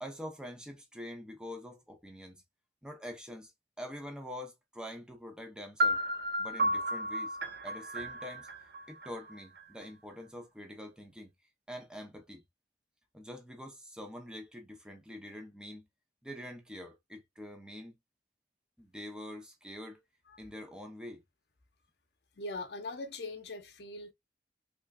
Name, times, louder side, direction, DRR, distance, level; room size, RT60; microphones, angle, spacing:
voice 1, 0.0-2.4 2.8-3.5 3.8-6.0 6.4-7.4 7.6-8.5 8.9-11.3 11.7-12.4 13.1-15.9 16.2-18.0 18.8-20.0 20.4-21.2, left 1 dB, 5° right, 0.7 m, -45 dB
sound 1, 5.8-9.6, equal, 65° right, 0.7 m, -33 dB
voice 2, 22.4-24.1, left 2 dB, 70° left, 0.7 m, -41 dB
3.3 x 3.0 x 2.3 m
head